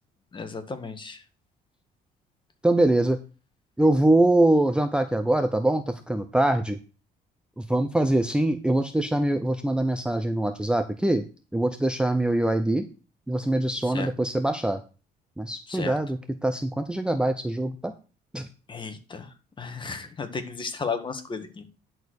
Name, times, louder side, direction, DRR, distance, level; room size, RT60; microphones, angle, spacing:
voice 1, 0.3-1.2 13.8-14.1 15.7-16.0 18.7-19.3 19.6-21.7, left 5 dB, 30° left, 8 dB, 1.7 m, -34 dB
voice 2, 2.6-3.2 3.8-6.8 7.6-11.2 11.5-12.9 13.3-14.8 15.4-17.9 18.3-18.5, right 1 dB, 5° right, 8 dB, 0.7 m, -23 dB
10.5 x 4.5 x 6.4 m, 0.33 s
cardioid pair, 110°, 17 cm